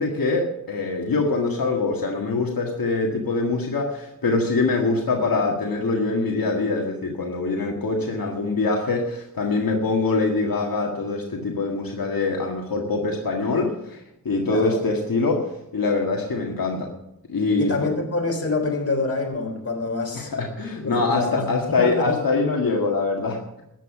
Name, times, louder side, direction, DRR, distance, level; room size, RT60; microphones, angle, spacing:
voice 1, 0.0-14.0 14.3-16.9 17.3-17.9 20.1-23.4, left 3 dB, 80° left, 0 dB, 1.9 m, -24 dB
voice 2, 14.5-14.8 17.6-20.3 20.8-21.5 21.8-22.2, left 3 dB, 45° left, 1 dB, 3.9 m, -26 dB
14.0 x 9.3 x 6.1 m, 0.83 s
wide cardioid pair, 85°, 34 cm